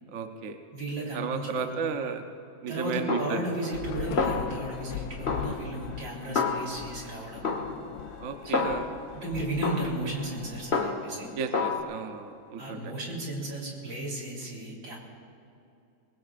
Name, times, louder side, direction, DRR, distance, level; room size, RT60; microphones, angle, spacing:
voice 1, 0.1-0.6 1.1-2.2 2.6-3.4 8.2-8.9 11.3-12.9, right 5 dB, 55° right, 6 dB, 1.0 m, -33 dB
voice 2, 0.7-1.8 2.7-7.5 8.5-8.7 9.1-11.3 12.6-15.0, right 1 dB, 75° right, -3 dB, 4.3 m, -34 dB
Snare drum, 3.1-3.9 4.2-4.9 5.3-7.0 7.4-9.1 9.6-11.2 11.5-11.8, left 4 dB, 35° left, 1.5 m, -30 dB
Thunder / Rain, 3.7-11.2, left 10 dB, 80° left, 1.3 m, -40 dB
24.5 x 19.5 x 2.5 m, 2.7 s
omnidirectional pair, 2.1 m